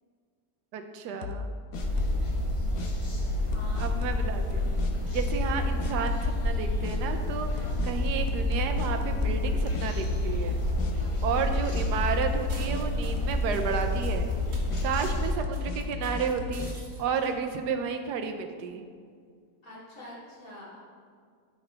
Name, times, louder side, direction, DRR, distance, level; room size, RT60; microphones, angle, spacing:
voice 1, 0.7-1.5 3.8-4.6 5.1-10.6 11.2-14.3 14.8-16.7 17.0-18.9, right 6 dB, 80° right, 6 dB, 1.2 m, -32 dB
sound 1, 1.2-2.3 2.8-2.9 3.5-4.3 4.8-4.9 5.3-5.5 5.8-6.3 6.8-7.0 7.6-9.5 9.7-10.5 10.8-10.9 11.5-12.8 13.2-13.4 13.7-14.2 14.7-14.8 15.4-16.8, left 4 dB, 75° left, 1.2 m, -35 dB
sound 2, 1.7-15.3, left 1 dB, 25° left, 0.9 m, -29 dB
voice 2, 3.5-3.8 5.0-5.2 7.6-7.8 11.0-11.5 14.8-15.1 19.6-20.8, left 1 dB, 55° left, -8 dB, 3.0 m, -47 dB
sound 3, 12.3-17.3, right 1 dB, 55° right, 1.8 m, -46 dB
12.5 x 5.6 x 3.4 m, 2.1 s
omnidirectional pair, 1.7 m